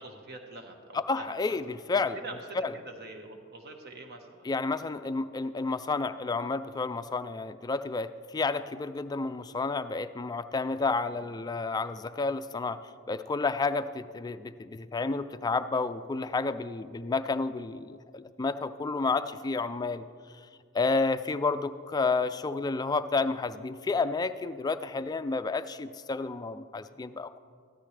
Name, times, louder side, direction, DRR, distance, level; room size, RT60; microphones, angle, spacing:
voice 1, 0.0-1.6 1.9-4.9 11.0-11.3 19.3-19.4, right 2 dB, 50° right, 4 dB, 1.3 m, -45 dB
voice 2, 1.1-2.2 2.6-2.7 4.4-12.8 13.1-20.0 20.7-27.4, left 3 dB, 20° left, 11 dB, 0.3 m, -30 dB
14.5 x 12.5 x 3.3 m, 2.1 s
head